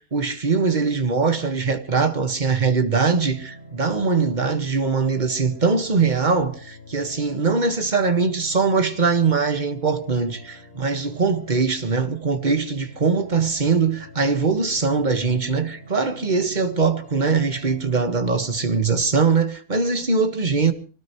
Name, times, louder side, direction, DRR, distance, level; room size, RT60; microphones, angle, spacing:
voice 1, 0.1-6.5 6.9-20.7, right 4 dB, 35° right, 1.7 m, -21 dB
sound 1, 3.0-19.0, equal, 90° left, 8.5 m, -45 dB
24.5 x 18.5 x 3.1 m
omnidirectional pair, 1.5 m